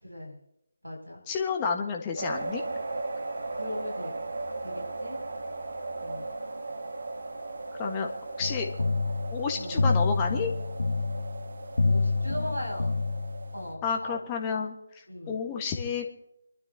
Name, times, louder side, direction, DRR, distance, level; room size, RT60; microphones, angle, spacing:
voice 1, 0.0-0.4 0.8-1.2 3.5-4.1 4.6-5.2 6.0-6.3 9.5-9.8 11.8-12.9 13.5-14.2 15.1-15.4, left 1 dB, 90° right, -1 dB, 6.8 m, -38 dB
voice 2, 1.3-2.6 7.8-8.1 8.4-8.7 9.3-10.5 13.8-14.7 15.3-16.1, left 5 dB, 15° left, 3 dB, 1.4 m, -30 dB
sound 1, 2.2-13.7, right 2 dB, 55° right, 1.7 m, -37 dB
sound 2, 8.4-13.7, left 3 dB, 55° left, 1.1 m, -28 dB
27.0 x 12.0 x 2.9 m, 0.81 s
figure-of-eight pair, 155°, 0 cm